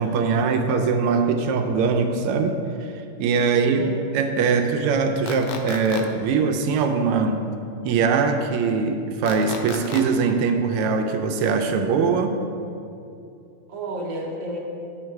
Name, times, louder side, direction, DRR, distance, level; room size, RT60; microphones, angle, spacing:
voice 1, 0.0-2.6 3.2-3.8 4.1-7.4 7.8-12.4, right 5 dB, 90° right, 5 dB, 1.5 m, -22 dB
voice 2, 3.5-4.2 13.7-14.6, right 2 dB, 65° right, -1 dB, 1.7 m, -31 dB
sound 1, 5.3-6.0 9.3-10.0, left 6 dB, 70° left, 1.0 m, -33 dB
9.7 x 3.9 x 4.6 m, 2.6 s
omnidirectional pair, 2.4 m